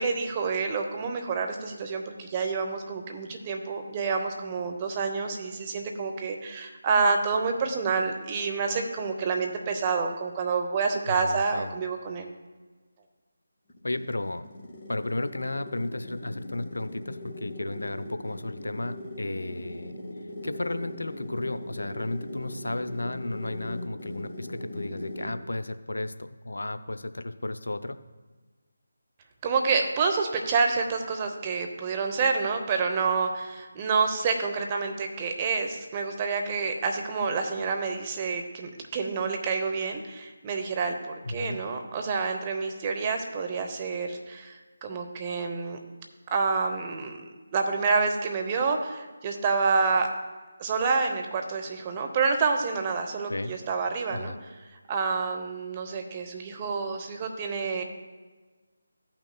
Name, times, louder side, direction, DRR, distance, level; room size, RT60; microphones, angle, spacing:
voice 1, 0.0-12.3 29.4-45.8 46.3-47.2 47.5-50.1 50.6-54.6 54.9-57.8, right 4 dB, 25° right, 4 dB, 0.7 m, -28 dB
voice 2, 11.1-11.7 13.8-14.5 14.9-19.9 20.4-28.0 41.2-41.6 53.3-53.5 54.1-54.4, left 2 dB, 75° left, 11 dB, 0.4 m, -33 dB
sound 1, 13.7-25.5, left 1 dB, 25° left, 1.8 m, -40 dB
15.0 x 5.8 x 2.2 m, 1.3 s
figure-of-eight pair, 155°, 0 cm